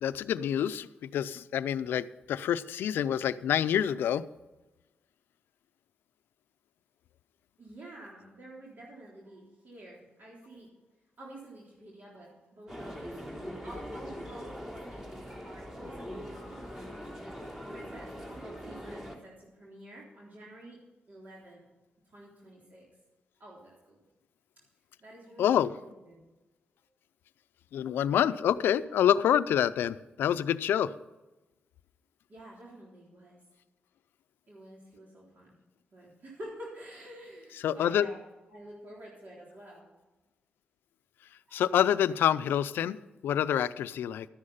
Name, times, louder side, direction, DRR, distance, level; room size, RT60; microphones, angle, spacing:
voice 1, 0.0-4.2 25.4-25.7 27.7-30.9 37.6-38.1 41.5-43.0 43.2-44.3, left 10 dB, 90° left, 15 dB, 0.5 m, -27 dB
voice 2, 7.6-10.7 11.2-17.0 17.7-20.8 21.1-21.7 22.1-22.9 23.4-24.0 25.0-26.2 32.3-33.4 34.5-35.5 35.9-38.2 38.5-39.9 41.5-41.6, right 1 dB, 55° right, -4 dB, 3.6 m, -49 dB
sound 1, 12.7-19.2, equal, 10° right, 3.4 m, -42 dB
13.0 x 9.9 x 5.6 m, 1.1 s
cardioid pair, 70°, 4 cm